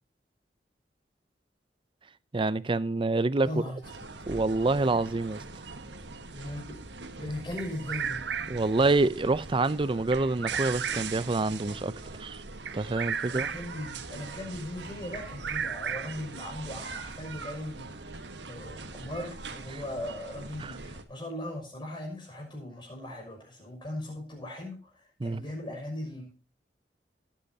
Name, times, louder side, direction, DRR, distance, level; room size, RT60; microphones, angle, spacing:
voice 1, 2.3-3.5 4.3-5.4 8.5-12.4 12.7-13.5 19.7-19.8 20.6-20.8 25.2-25.4, right 3 dB, 30° right, 0.5 m, -27 dB
voice 2, 3.5-3.8 6.3-6.8 7.2-8.2 13.2-26.3, left 1 dB, 30° left, 6.0 m, -39 dB
sound 1, 3.8-21.0, right 3 dB, 90° right, 1.4 m, -42 dB
Bird vocalization bird call bird song, 7.6-8.7 10.1-11.3 12.6-13.8 15.1-16.3, right 7 dB, 75° right, 0.7 m, -34 dB
20.0 x 8.6 x 2.8 m
head